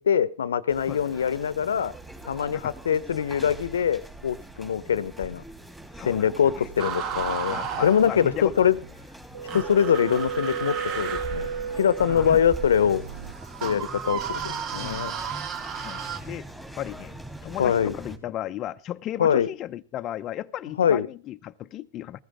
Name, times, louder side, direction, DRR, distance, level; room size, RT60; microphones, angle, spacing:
voice 1, 0.0-1.9 2.2-5.4 6.0-8.8 9.5-11.5 11.8-13.0 13.6-15.1 17.6-17.9 19.2-19.5 20.8-21.1, left 8 dB, 85° left, 1.0 m, -23 dB
sound 1, 0.7-18.2, right 1 dB, 5° right, 3.4 m, -42 dB
voice 2, 5.9-6.3 7.5-8.5 9.5-9.6 12.1-12.4 13.6-13.8 14.7-15.1 15.8-16.5 16.8-17.1 17.4-22.2, left 12 dB, 35° left, 0.8 m, -35 dB
sound 2, 6.1-6.9 7.2-8.0 8.3-8.9 9.3-13.3, right 6 dB, 80° right, 1.6 m, -36 dB
sound 3, 6.8-8.5 9.5-16.2, right 7 dB, 40° right, 2.1 m, -34 dB
16.5 x 14.5 x 3.6 m
hypercardioid pair, 110°, 0 cm